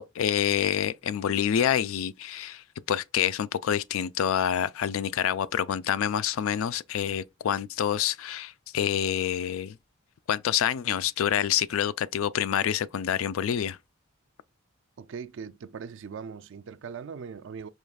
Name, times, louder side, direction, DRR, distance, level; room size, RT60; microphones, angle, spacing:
voice 1, 0.0-9.8 10.3-13.8, left 9 dB, 75° left, 0.3 m, -27 dB
voice 2, 15.0-17.7, right 6 dB, 60° right, 0.4 m, -40 dB
4.8 x 3.1 x 2.3 m
head